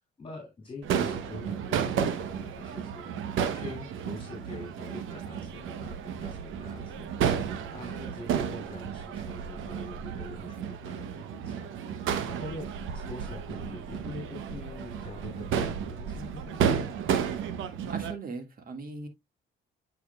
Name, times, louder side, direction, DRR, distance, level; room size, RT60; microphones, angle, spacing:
voice 1, 0.2-3.1 3.5-7.1 7.7-11.7 12.3-16.6, left 2 dB, 25° left, 2.7 m, -44 dB
Crowd / Fireworks, 0.8-18.1, right 7 dB, 85° right, 0.9 m, -32 dB
voice 2, 17.9-19.1, right 3 dB, 45° right, 1.8 m, -39 dB
8.5 x 5.0 x 2.3 m
cardioid pair, 90°, 20 cm